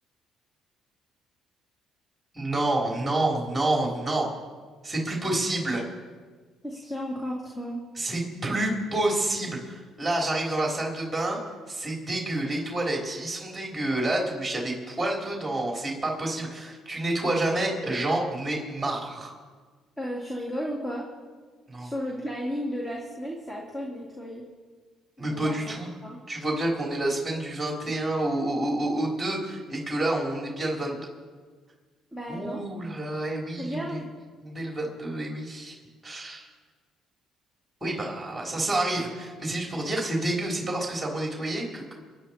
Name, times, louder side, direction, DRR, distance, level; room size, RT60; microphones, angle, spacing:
voice 1, 2.3-4.3 4.8-5.8 8.0-11.4 11.7-19.3 21.7-21.9 25.2-25.9 26.3-31.0 32.3-34.0 34.4-35.8 36.0-36.5 37.8-41.9, right 1 dB, 10° right, -2 dB, 3.6 m, -28 dB
voice 2, 6.6-7.8 20.0-21.1 21.8-24.4 25.2-25.7 26.0-26.2 32.1-32.6 33.6-34.0, equal, 15° left, -2 dB, 2.8 m, -34 dB
24.5 x 9.9 x 4.4 m, 1.5 s
cardioid pair, 90°, 0 cm